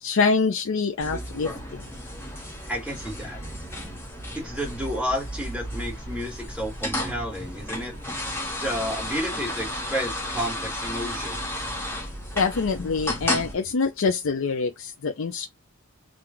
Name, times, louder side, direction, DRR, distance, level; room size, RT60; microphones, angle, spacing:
voice 1, 0.0-1.8 12.4-15.5, left 4 dB, 65° left, 0.5 m, -25 dB
sound 1, 1.0-13.5, left 1 dB, 10° left, 1.3 m, -33 dB
voice 2, 2.7-3.4 4.3-7.9 8.6-11.5, equal, 5° right, 2.0 m, -31 dB
3.8 x 2.4 x 4.3 m
head